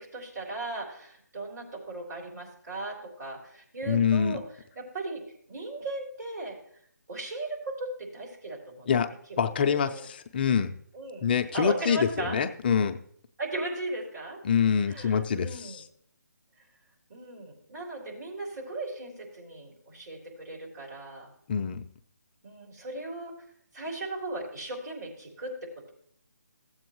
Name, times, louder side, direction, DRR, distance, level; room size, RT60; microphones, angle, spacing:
voice 1, 0.0-4.4 4.8-5.2 5.5-6.6 7.1-8.9 9.8-10.0 10.9-11.3 11.5-12.4 13.4-14.4 14.9-15.8 17.1-21.3 22.4-23.3 23.7-25.5, right 2 dB, 60° right, -2 dB, 3.7 m, -37 dB
voice 2, 3.9-4.4 8.9-9.1 9.4-10.7 11.2-13.0 14.4-15.8 21.5-21.8, left 7 dB, 30° left, 6 dB, 0.5 m, -25 dB
15.0 x 7.9 x 3.0 m, 0.64 s
figure-of-eight pair, 155°, 10 cm